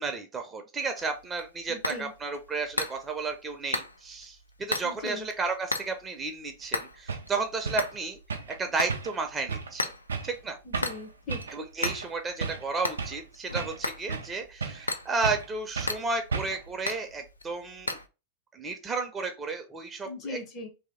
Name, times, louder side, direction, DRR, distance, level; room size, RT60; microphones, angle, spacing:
voice 1, 0.0-8.2 8.6-9.9 10.2-10.6 11.5-18.0 18.5-20.4, right 4 dB, 20° right, 6 dB, 0.6 m, -33 dB
sound 1, 1.0-18.1, left 2 dB, 80° left, 0.4 m, -37 dB
voice 2, 1.7-2.1 4.8-5.3 10.6-11.4 20.0-20.7, left 2 dB, 35° left, 5 dB, 0.9 m, -39 dB
sound 2, 6.6-6.7 7.1-7.3 7.7-7.9 8.3-8.6 8.9-9.2 9.5-9.7 10.1-10.4 10.7-11.0 11.3-11.6 11.9-12.1 12.4-13.2 13.6-14.3 14.6-14.9 15.2-15.5 15.8-16.0 16.3-16.7, right 5 dB, 70° right, 0.5 m, -33 dB
3.0 x 2.8 x 3.7 m, 0.29 s
figure-of-eight pair, 90°, 0 cm